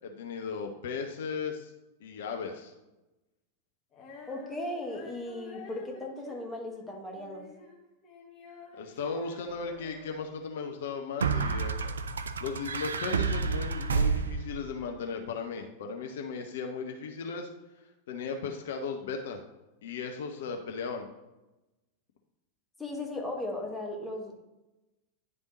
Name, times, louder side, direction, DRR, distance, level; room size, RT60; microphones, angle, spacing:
voice 1, 0.0-1.7 2.0-2.7 8.7-11.9 12.4-17.5 18.1-19.4 19.8-21.1, left 5 dB, 55° left, 4 dB, 0.7 m, -36 dB
Female singing, 3.9-10.3, left 2 dB, 30° left, 1.4 m, -50 dB
voice 2, 4.3-7.5 22.8-24.5, left 1 dB, 5° left, -1 dB, 1.3 m, -37 dB
sound 1, 9.5-9.6 11.2-14.7, right 5 dB, 70° right, 0.3 m, -29 dB
9.7 x 3.5 x 3.9 m, 1.0 s
figure-of-eight pair, 90°, 0 cm